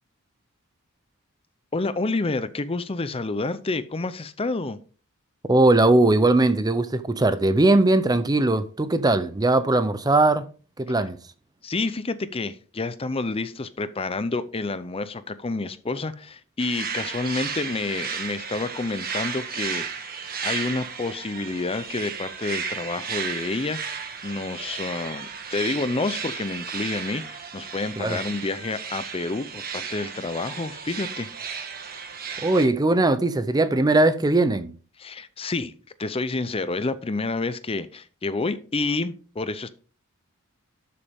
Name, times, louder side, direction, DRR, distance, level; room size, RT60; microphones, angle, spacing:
voice 1, 1.7-4.8 11.6-31.3 35.0-35.7 36.0-39.7, left 3 dB, 25° left, 0.6 m, -29 dB
voice 2, 5.5-10.5 10.8-11.2 28.0-28.2 32.4-34.7, right 2 dB, 15° right, 0.6 m, -20 dB
sound 1, 16.6-32.6, right 6 dB, 40° right, 1.5 m, -34 dB
12.5 x 6.9 x 3.6 m
head